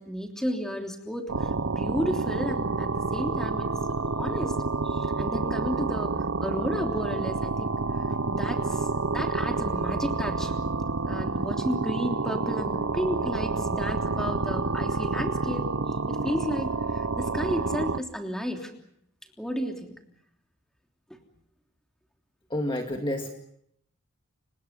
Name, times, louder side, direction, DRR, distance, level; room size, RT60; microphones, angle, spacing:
voice 1, 0.0-3.7 4.0-4.5 4.8-6.1 6.4-10.5 11.0-15.6 16.1-18.7 19.4-20.0, equal, ahead, 3 dB, 3.2 m, -33 dB
sound 1, 1.3-18.0, right 3 dB, 65° right, 1.0 m, -29 dB
voice 2, 22.5-23.3, left 1 dB, 25° left, 3 dB, 2.1 m, -29 dB
30.0 x 26.0 x 5.5 m, 0.73 s
head